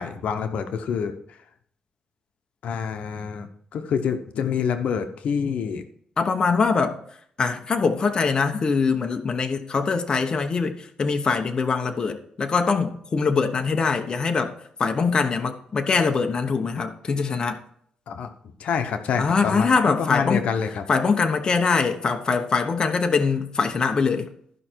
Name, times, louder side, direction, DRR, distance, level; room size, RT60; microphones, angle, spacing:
voice 1, 0.0-1.4 2.6-3.5 3.7-5.8 18.1-20.8, left 7 dB, 70° left, 1.0 m, -27 dB
voice 2, 6.2-7.0 7.4-14.5 14.8-17.6 19.2-20.4 20.9-24.3, left 5 dB, 35° left, 1.0 m, -23 dB
13.5 x 5.6 x 4.6 m
cardioid pair, 135°, 2 cm